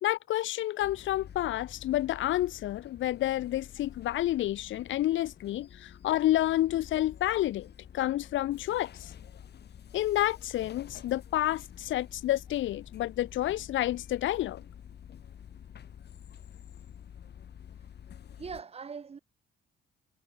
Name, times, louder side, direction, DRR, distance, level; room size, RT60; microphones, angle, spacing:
voice 1, 0.0-7.7 7.9-9.1 9.9-14.6, left 14 dB, 75° left, 0.7 m, -29 dB
sound 1, 0.8-18.6, left 9 dB, 55° left, 2.6 m, -49 dB
voice 2, 18.4-19.2, right 6 dB, 30° right, 0.8 m, -41 dB
cardioid pair, 90°, 20 cm